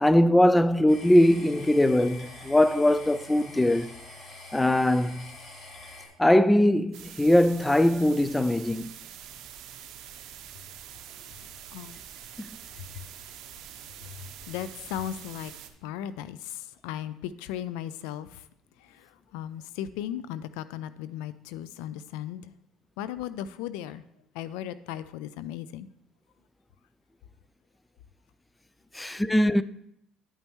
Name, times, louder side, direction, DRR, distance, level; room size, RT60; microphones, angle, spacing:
voice 1, 0.0-3.9 4.5-5.3 6.2-8.9 12.4-12.5 28.9-29.6, left 1 dB, 10° left, 0.3 m, -21 dB
sound 1, 0.9-6.1, left 2 dB, 35° left, 2.2 m, -45 dB
sound 2, 6.9-15.7, right 10 dB, 70° right, 0.7 m, -45 dB
voice 2, 14.5-15.5 15.8-18.5 18.8-22.5 23.0-24.0 24.3-25.9, left 11 dB, 85° left, 0.4 m, -36 dB
11.0 x 5.4 x 3.0 m
supercardioid pair, 95°, 0 cm